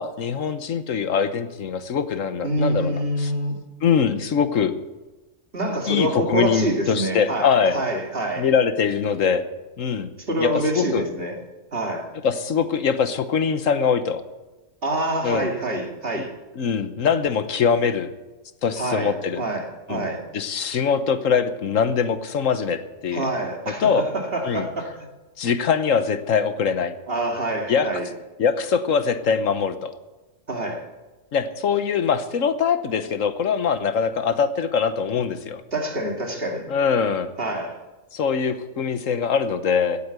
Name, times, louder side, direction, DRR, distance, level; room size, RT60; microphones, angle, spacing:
voice 1, 0.0-3.3 3.8-4.7 5.9-7.8 8.4-9.5 9.8-10.1 10.4-11.0 12.2-14.2 15.2-15.5 16.2-16.3 16.6-18.1 18.6-19.4 19.9-20.1 20.3-23.3 23.8-24.1 24.4-24.7 25.4-26.9 27.7-27.9 28.4-30.0 31.3-35.6 36.7-37.3 38.1-40.0, left 6 dB, 85° left, 10 dB, 1.4 m, -22 dB
voice 2, 2.4-3.6 5.5-8.5 10.3-11.4 11.7-12.1 14.8-16.3 18.8-20.2 23.1-23.9 24.1-24.9 27.1-28.1 30.5-30.8 35.7-36.7 37.4-37.8, right 1 dB, 45° right, 1 dB, 2.6 m, -26 dB
17.0 x 8.5 x 8.2 m, 1.1 s
omnidirectional pair, 1.3 m